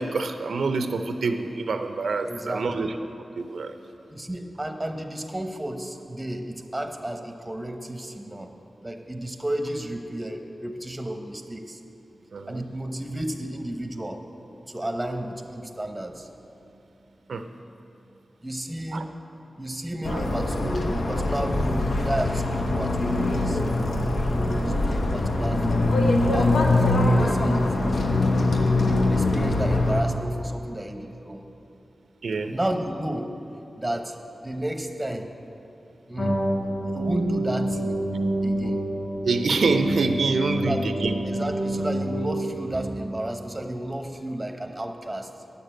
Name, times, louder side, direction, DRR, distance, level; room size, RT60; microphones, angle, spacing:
voice 1, 0.0-3.0 3.4-3.7 12.3-12.6 17.3-17.5 18.9-19.0 32.2-32.5 39.2-41.1, right 3 dB, 80° right, 8 dB, 0.5 m, -26 dB
voice 2, 2.2-2.9 4.1-8.5 8.8-11.8 12.5-14.2 14.7-16.3 18.4-19.1 19.6-23.6 24.2-25.8 26.3-28.0 28.8-31.4 32.5-33.3 33.8-34.2 34.4-35.3 36.1-36.4 36.8-38.0 38.4-38.8 40.6-40.9 41.2-45.3, right 1 dB, 15° right, 5 dB, 0.9 m, -32 dB
sound 1, 20.0-30.0, left 2 dB, 75° left, 1.0 m, -23 dB
sound 2, 36.2-43.2, right 1 dB, 40° left, 1.3 m, -28 dB
9.9 x 6.6 x 8.9 m, 2.8 s
wide cardioid pair, 105°, 0 cm